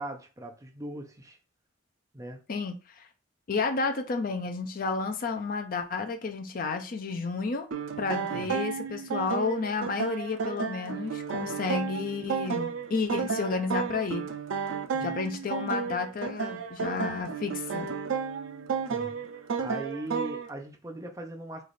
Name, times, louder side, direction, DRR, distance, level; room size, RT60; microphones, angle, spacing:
voice 1, 0.0-1.4 2.1-2.4 8.3-8.5 14.9-15.2 18.9-21.6, right 1 dB, 15° right, 0.5 m, -40 dB
voice 2, 2.5-3.1 3.5-7.7 8.0-14.3 15.0-17.9, left 4 dB, 45° left, 0.4 m, -31 dB
sound 1, 7.7-20.5, right 6 dB, 75° right, 0.4 m, -32 dB
3.2 x 2.4 x 4.0 m
head